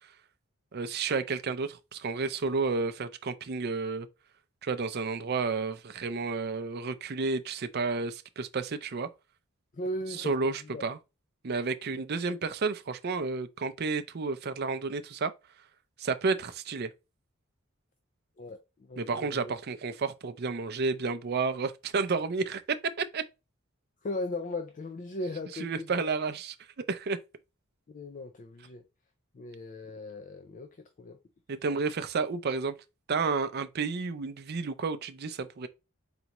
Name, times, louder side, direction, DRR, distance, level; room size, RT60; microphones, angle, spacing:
voice 1, 0.7-4.1 4.6-9.1 10.2-11.0 11.4-15.3 16.0-16.9 19.0-22.6 23.0-23.2 25.5-27.2 31.5-32.8 33.1-35.7, right 4 dB, 50° right, 0.5 m, -31 dB
voice 2, 9.7-10.8 18.4-18.6 18.9-19.5 24.0-26.1 27.9-28.8 29.3-31.2, left 2 dB, 40° left, 0.4 m, -38 dB
4.0 x 3.4 x 2.9 m
head